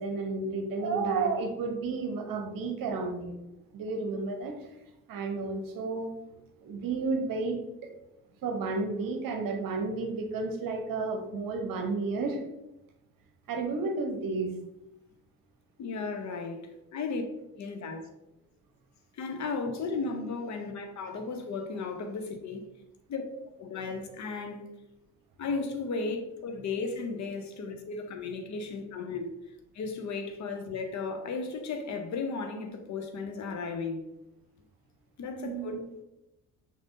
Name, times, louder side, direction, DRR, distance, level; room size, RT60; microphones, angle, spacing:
voice 1, 0.0-3.4 3.7-4.7 5.1-6.1 6.6-7.9 8.4-12.4 13.5-14.5 35.4-35.8, right 3 dB, 45° right, 0.9 m, -32 dB
voice 2, 15.8-17.2 17.6-18.1 19.1-22.7 23.1-23.2 23.6-24.8 25.4-29.3 29.7-34.0 35.2-35.9, left 4 dB, 40° left, 0.8 m, -35 dB
6.0 x 2.7 x 2.7 m
figure-of-eight pair, 45°, 46 cm